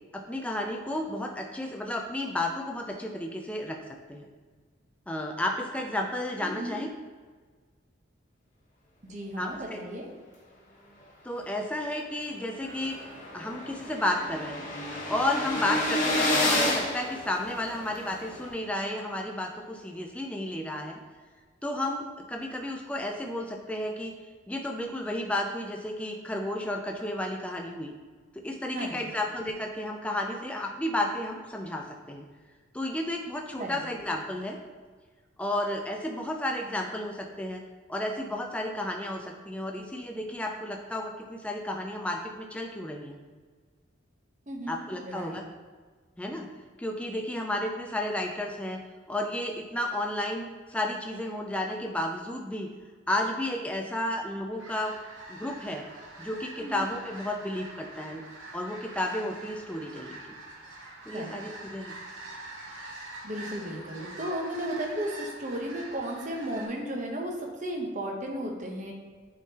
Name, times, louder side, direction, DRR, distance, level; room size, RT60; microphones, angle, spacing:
voice 1, 0.1-3.8 4.1-4.3 5.1-6.9 9.4-9.8 11.2-13.0 13.3-14.7 15.1-21.0 21.6-24.1 24.5-27.9 28.3-32.2 32.7-34.6 35.4-37.6 37.9-43.2 44.7-45.4 46.2-46.5 46.8-48.8 49.1-52.7 53.1-54.9 55.3-55.8 56.2-58.2 58.5-60.2 61.1-61.9, left 1 dB, 5° left, 1 dB, 0.3 m, -32 dB
voice 2, 6.4-6.8 9.0-10.1 28.7-29.1 33.6-33.8 44.5-44.8 45.0-45.4 56.6-56.8 61.1-61.4 63.2-68.9, right 1 dB, 35° right, 0 dB, 0.8 m, -34 dB
sound 1, 12.4-12.5 12.8-12.9 13.1-18.0, left 1 dB, 40° left, 1.2 m, -29 dB
sound 2, 12.6-18.5, equal, 60° left, 1.3 m, -46 dB
sound 3, 54.6-66.7, right 2 dB, 70° right, 1.2 m, -45 dB
9.0 x 3.6 x 2.9 m, 1.5 s
head